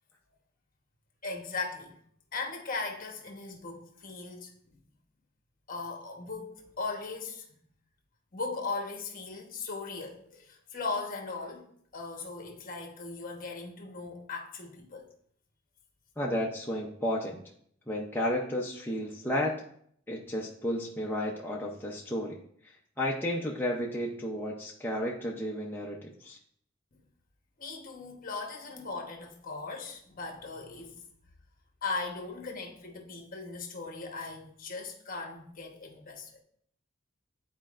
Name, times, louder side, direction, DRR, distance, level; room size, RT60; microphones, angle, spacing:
voice 1, 1.2-1.9 2.3-4.8 5.7-7.6 8.3-11.6 11.9-15.1 27.6-31.0 31.8-36.4, left 3 dB, 45° left, 1.1 m, -38 dB
voice 2, 16.2-17.4 17.9-19.5 20.1-22.4 22.6-26.4, left 1 dB, 10° left, 0.6 m, -32 dB
11.0 x 4.3 x 2.5 m
head